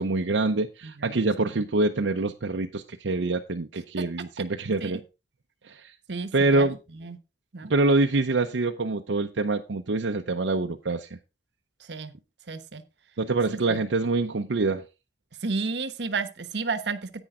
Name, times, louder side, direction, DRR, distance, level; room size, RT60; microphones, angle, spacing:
voice 1, 0.0-5.0 5.7-5.9 6.3-6.8 7.6-11.1 13.2-14.8, right 3 dB, 90° right, 0.7 m, -25 dB
voice 2, 0.8-1.2 1.5-1.6 4.8-4.9 6.1-6.7 7.0-7.2 7.5-7.7 11.9-12.1 12.5-12.8 13.5-13.8 15.4-17.2, right 4 dB, 70° right, 1.0 m, -32 dB
10.0 x 8.9 x 3.6 m
head